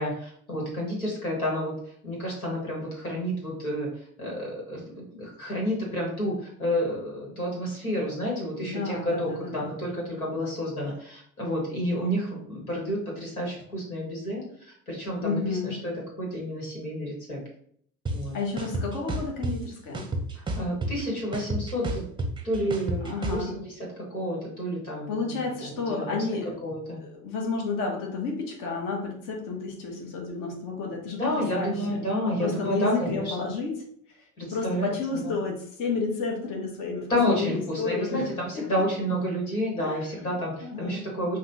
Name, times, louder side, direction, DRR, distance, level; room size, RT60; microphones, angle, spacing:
voice 1, 0.0-1.7 2.0-17.4 18.1-18.4 20.3-22.0 22.4-26.2 26.6-27.0 31.2-33.3 34.4-35.4 37.1-41.4, equal, 85° left, -3 dB, 1.5 m, -30 dB
voice 2, 8.6-9.7 15.2-15.7 18.3-20.1 23.0-23.5 25.1-26.5 27.0-33.7 34.4-38.7 39.8-40.3 40.6-41.1, left 4 dB, 50° left, 0 dB, 1.2 m, -31 dB
sound 1, 18.1-18.2 18.6-19.5 19.9-21.0 21.3-23.4, right 2 dB, 10° right, 0.7 m, -30 dB
5.2 x 2.4 x 2.7 m, 0.62 s
figure-of-eight pair, 60°, 42 cm